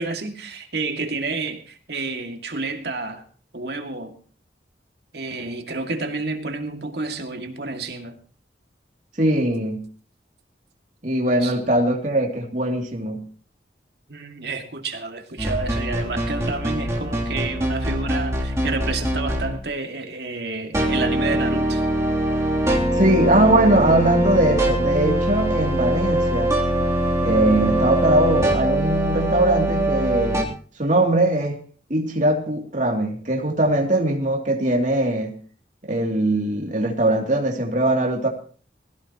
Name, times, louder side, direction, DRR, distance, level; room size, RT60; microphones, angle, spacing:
voice 1, 0.0-3.2 3.5-4.2 5.1-8.2 11.4-11.5 14.1-21.8, right 3 dB, 65° right, 2.3 m, -30 dB
voice 2, 9.2-9.8 11.0-13.2 23.0-26.5 27.2-30.4 30.8-31.5 31.9-35.3 35.9-38.3, right 1 dB, 45° right, 2.9 m, -20 dB
sound 1, 15.4-19.6 20.7-30.4, right 1 dB, 15° right, 3.1 m, -23 dB
21.0 x 16.0 x 3.0 m
head